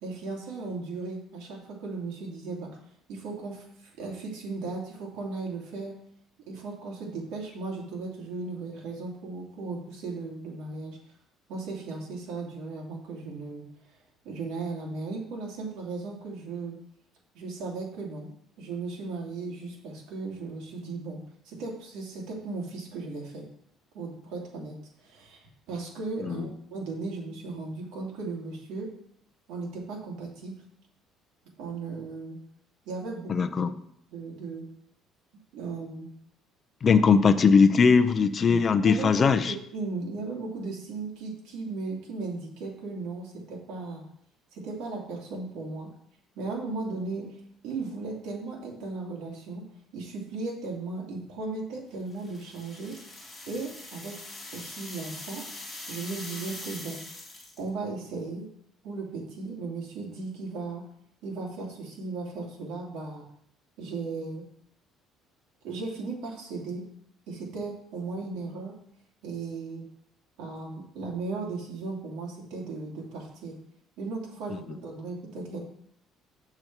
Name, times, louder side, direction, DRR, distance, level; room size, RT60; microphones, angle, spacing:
voice 1, 0.0-2.7 3.1-6.0 6.5-11.0 11.5-13.7 14.2-16.7 17.3-18.3 18.6-23.4 23.9-24.8 25.0-28.9 29.5-30.5 31.6-32.4 32.9-33.7 34.1-34.6 35.5-36.1 38.4-44.0 44.5-45.9 46.4-47.3 47.6-49.6 49.9-53.0 53.5-54.2 54.5-55.4 55.9-57.0 57.6-58.5 58.8-60.8 61.2-63.3 63.8-64.4 65.6-66.8 67.3-68.7 69.2-69.8 70.4-73.6 74.0-75.6, right 3 dB, 75° right, -2 dB, 2.6 m, -36 dB
voice 2, 33.3-33.7 36.8-39.5, left 5 dB, 25° left, 9 dB, 0.5 m, -20 dB
sound 1, 52.1-57.7, left 2 dB, 5° left, 2.1 m, -42 dB
7.4 x 6.8 x 4.6 m, 0.69 s
cardioid pair, 175°, 0 cm